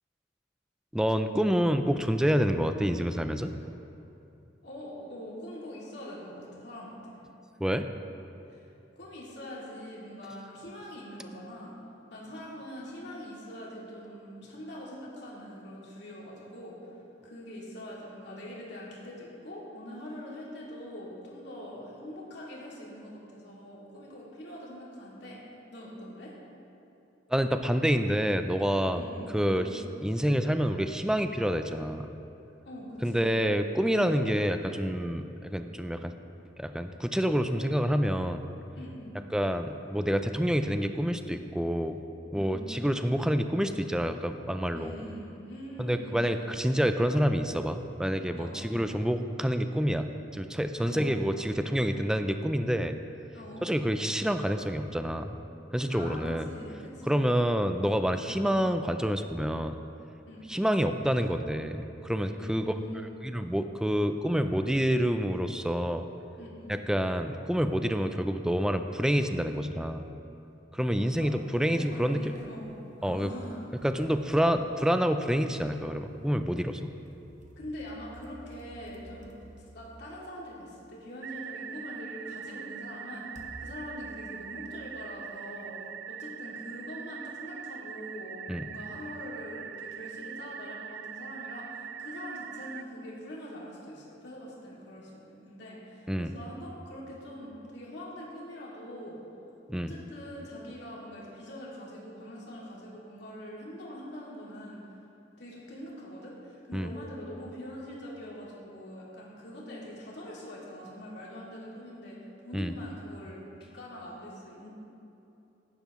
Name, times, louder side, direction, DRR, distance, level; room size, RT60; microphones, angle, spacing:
voice 1, 0.9-3.5 7.6-7.9 27.3-29.0 29.3-29.7 30.0-32.1 33.0-36.1 36.6-38.4 39.3-42.0 42.3-45.0 45.8-53.0 53.6-55.4 55.7-56.5 57.1-59.8 60.5-62.7 63.2-66.1 66.7-70.1 70.7-72.3 73.0-73.3 73.8-76.9 88.5-88.7 96.1-96.3 99.7-99.9 106.7-106.9 112.5-112.7, equal, 5° right, 8 dB, 0.4 m, -28 dB
voice 2, 4.6-7.2 8.5-8.7 9.0-11.7 12.1-16.9 17.2-25.4 25.7-26.3 28.9-29.3 29.6-29.8 32.6-33.4 34.0-34.2 38.7-39.1 42.3-42.7 44.7-46.2 48.4-48.7 50.8-51.2 53.3-53.7 55.9-57.2 58.3-58.5 60.3-60.4 62.4-63.1 66.4-66.7 71.2-73.6 77.6-83.3 83.6-85.8 86.1-99.2 99.7-104.8 105.4-112.2 112.4-114.7, left 1 dB, 65° left, -6 dB, 2.5 m, -43 dB
sound 1, 71.6-72.6 73.1-75.5 76.6-81.1 81.9-82.0 83.4-85.3, right 1 dB, 45° right, 1.1 m, -53 dB
sound 2, 81.2-92.8, right 8 dB, 70° right, 0.4 m, -42 dB
15.5 x 10.5 x 3.1 m, 2.8 s
head